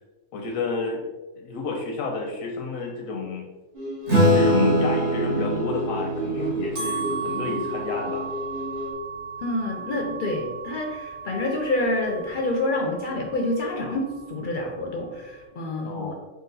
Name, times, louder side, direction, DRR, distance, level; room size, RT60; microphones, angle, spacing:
voice 1, 0.3-1.1 1.3-3.5 4.2-8.3 15.8-16.1, left 4 dB, 85° left, 0 dB, 1.0 m, -30 dB
sound 1, 3.7-8.9, right 1 dB, 30° right, 0.7 m, -32 dB
Acoustic guitar / Strum, 4.1-8.9, equal, 60° right, 1.5 m, -24 dB
sound 2, 6.6-15.4, right 6 dB, 85° right, 1.8 m, -36 dB
voice 2, 9.4-16.1, left 2 dB, 55° left, 1 dB, 0.6 m, -27 dB
3.9 x 2.4 x 3.9 m, 1.2 s
omnidirectional pair, 1.3 m